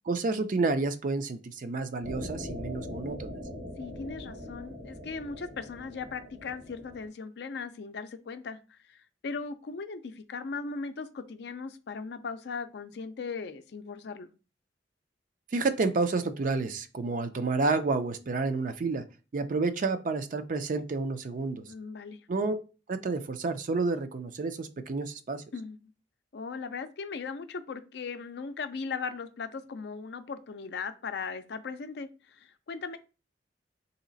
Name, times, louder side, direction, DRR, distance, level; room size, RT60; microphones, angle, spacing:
voice 1, 0.1-3.3 15.5-19.0 19.3-21.7 22.3-22.6 22.9-25.4, right 3 dB, 45° right, 0.4 m, -30 dB
sound 1, 2.0-7.1, left 1 dB, 70° right, 1.3 m, -41 dB
voice 2, 3.8-14.3 21.7-22.2 25.5-25.9 26.3-33.0, left 5 dB, 65° left, 0.4 m, -38 dB
3.2 x 2.8 x 3.9 m
head